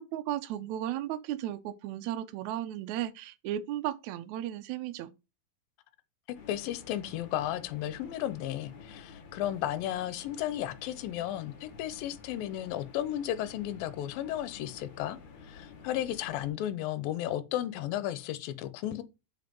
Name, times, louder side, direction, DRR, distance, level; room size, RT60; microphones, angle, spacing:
voice 1, 0.1-5.1, right 12 dB, 85° right, 1.7 m, -35 dB
sound 1, 6.3-16.5, left 5 dB, 60° left, 2.8 m, -51 dB
voice 2, 6.5-19.0, left 12 dB, 85° left, 2.5 m, -34 dB
5.6 x 5.2 x 5.2 m
omnidirectional pair, 4.0 m